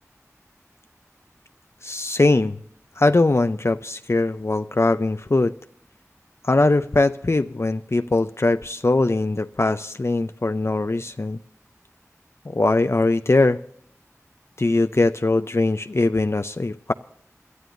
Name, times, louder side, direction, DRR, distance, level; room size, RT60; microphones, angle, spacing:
voice 1, 1.8-2.6 3.0-5.5 6.4-11.4 12.5-13.6 14.6-16.9, left 2 dB, 50° left, 0.5 m, -21 dB
27.5 x 12.5 x 2.6 m
wide cardioid pair, 40°, 6 cm